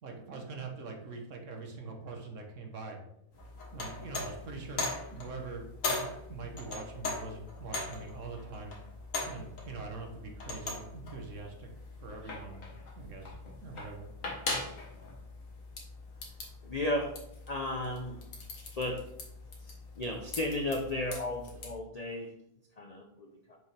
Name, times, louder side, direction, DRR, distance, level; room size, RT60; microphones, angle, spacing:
voice 1, 0.0-3.0 3.7-8.8 9.3-11.7 12.0-14.1, right 3 dB, 55° right, 2 dB, 1.4 m, -43 dB
sound 1, 3.3-21.7, left 3 dB, 55° left, 1.7 m, -41 dB
voice 2, 16.6-17.2 17.5-18.2 18.8-19.1 20.0-22.3 22.8-23.6, left 1 dB, 80° left, 2 dB, 0.3 m, -34 dB
6.4 x 5.3 x 3.3 m, 0.79 s
omnidirectional pair, 1.7 m